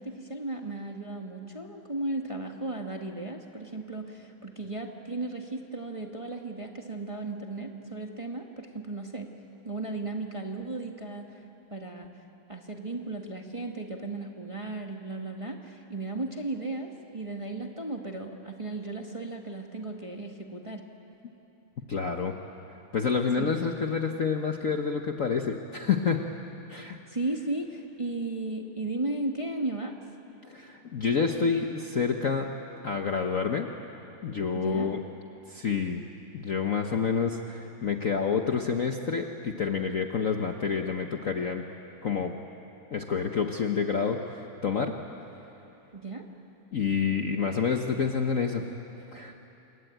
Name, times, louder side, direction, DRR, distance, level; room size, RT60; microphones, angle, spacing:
voice 1, 0.0-9.3 9.6-11.4 11.7-12.1 12.5-20.8 23.4-23.5 27.1-29.9 34.5-34.9 45.9-46.2, right 2 dB, 15° right, 2 dB, 1.4 m, -35 dB
voice 2, 21.9-22.3 22.9-26.2 26.7-27.0 30.5-32.5 32.8-33.7 34.2-35.0 35.5-36.0 36.3-41.6 42.0-42.4 42.9-45.0 46.7-48.6 49.1-49.4, left 6 dB, 50° left, 4 dB, 1.1 m, -28 dB
28.0 x 23.0 x 9.2 m, 3.0 s
omnidirectional pair, 2.4 m